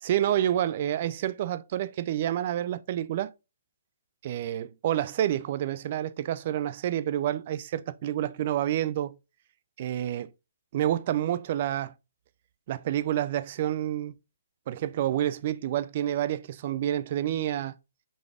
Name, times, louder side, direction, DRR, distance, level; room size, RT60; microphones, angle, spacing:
voice 1, 0.0-3.3 4.2-9.1 9.8-10.3 10.7-11.9 12.7-14.1 14.7-17.8, right 11 dB, 45° right, 0.3 m, -28 dB
4.9 x 3.9 x 2.3 m
hypercardioid pair, 150°, 0 cm